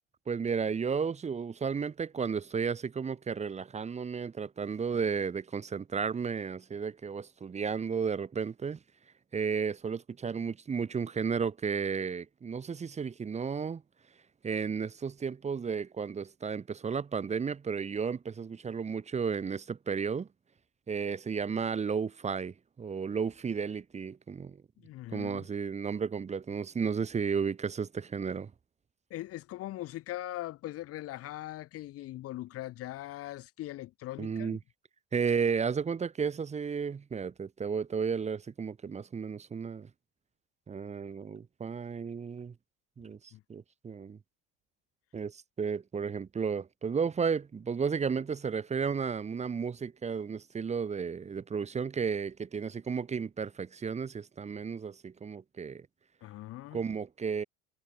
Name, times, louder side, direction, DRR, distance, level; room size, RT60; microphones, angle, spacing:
voice 1, 0.3-8.8 9.3-13.8 14.4-20.3 20.9-24.6 25.1-28.5 34.2-34.6 35.1-39.9 40.7-42.5 43.0-43.2 43.5-44.2 45.1-55.9 56.7-57.4, right 6 dB, 20° right, 3.8 m, -33 dB
voice 2, 24.8-25.5 29.1-34.6 43.3-43.4 56.2-56.8, left 15 dB, 50° left, 4.5 m, -41 dB
supercardioid pair, 130°, 31 cm